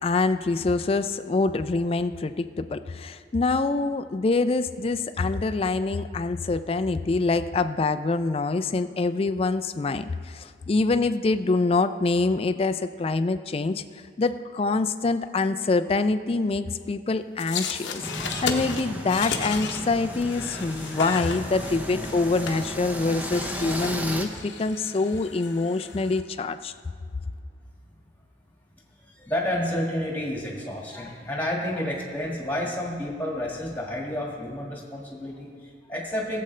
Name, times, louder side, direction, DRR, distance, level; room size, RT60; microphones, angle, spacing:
voice 1, 0.0-13.8 14.2-26.7, left 3 dB, 30° left, 11 dB, 0.3 m, -25 dB
sound 1, 17.4-26.2, left 5 dB, 75° left, 0.8 m, -35 dB
sound 2, 18.0-24.3, equal, 10° right, 0.6 m, -34 dB
voice 2, 29.0-36.4, left 1 dB, 10° left, -3 dB, 1.7 m, -30 dB
17.0 x 7.7 x 3.2 m, 2.2 s
head